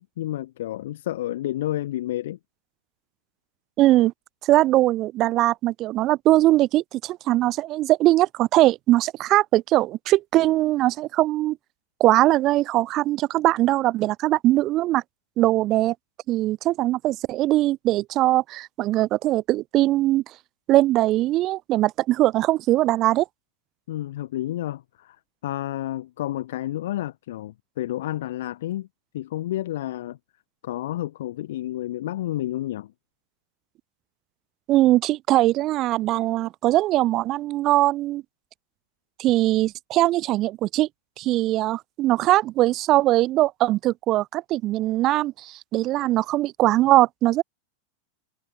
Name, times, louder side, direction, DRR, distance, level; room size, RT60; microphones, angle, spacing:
voice 1, 0.0-2.4 23.9-28.9 29.1-30.2 30.6-32.9, left 14 dB, 55° left, 1.4 m, -30 dB
voice 2, 3.8-4.1 4.4-11.6 12.0-15.0 15.4-15.9 16.3-20.2 20.7-23.3 34.7-38.2 39.2-40.9 41.2-47.4, right 16 dB, 35° right, 0.4 m, -21 dB
figure-of-eight pair, 90°, 0 cm